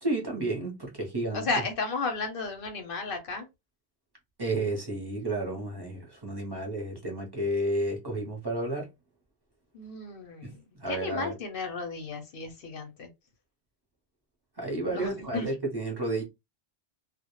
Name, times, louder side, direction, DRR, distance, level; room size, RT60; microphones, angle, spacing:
voice 1, 0.0-1.5 4.4-8.9 10.4-11.3 14.6-16.2, right 1 dB, 25° right, 0.6 m, -31 dB
voice 2, 1.3-3.5 9.7-10.6 10.9-13.1 14.9-15.5, left 3 dB, 60° left, 0.6 m, -33 dB
2.1 x 2.0 x 2.8 m
omnidirectional pair, 1.2 m